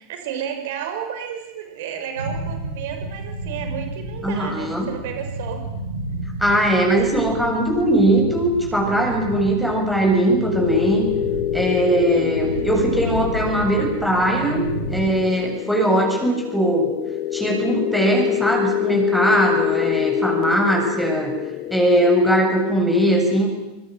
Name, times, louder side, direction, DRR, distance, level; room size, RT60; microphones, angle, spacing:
voice 1, 0.0-5.7 12.1-12.7, right 8 dB, 55° right, 6 dB, 6.1 m, -32 dB
sound 1, 2.2-15.1, right 1 dB, 85° right, 6.5 m, -31 dB
voice 2, 4.2-4.9 6.4-11.1 11.5-16.9 17.3-21.3 21.7-23.5, right 1 dB, ahead, 0 dB, 7.8 m, -20 dB
sound 2, 10.5-22.1, left 13 dB, 45° left, 1.2 m, -26 dB
26.0 x 25.5 x 7.9 m, 1.0 s
figure-of-eight pair, 85°, 0 cm